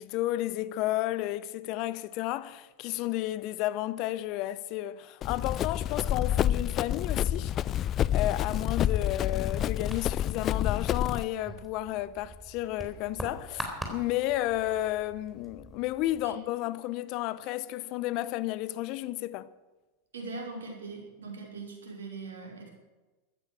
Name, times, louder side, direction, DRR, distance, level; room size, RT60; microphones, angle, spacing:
voice 1, 0.0-7.5 8.1-19.5, left 15 dB, 50° left, 0.9 m, -32 dB
Run, 5.2-11.2, left 11 dB, 35° left, 0.4 m, -28 dB
sound 1, 9.8-16.4, right 1 dB, 10° right, 3.9 m, -44 dB
voice 2, 20.1-22.7, right 3 dB, 80° right, 5.2 m, -41 dB
16.0 x 13.0 x 6.3 m
hypercardioid pair, 95°, 0 cm